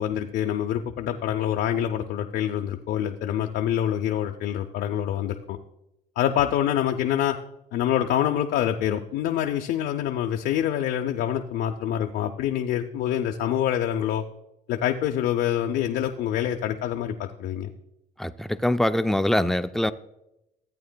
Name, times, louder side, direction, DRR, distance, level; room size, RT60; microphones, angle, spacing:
voice 1, 0.0-5.6 6.2-7.4 7.7-14.2 14.7-17.7, left 10 dB, 75° left, 4 dB, 0.5 m, -26 dB
voice 2, 18.2-19.9, left 1 dB, ahead, 11 dB, 0.3 m, -23 dB
14.0 x 8.5 x 2.2 m, 0.87 s
cardioid pair, 110°, 17 cm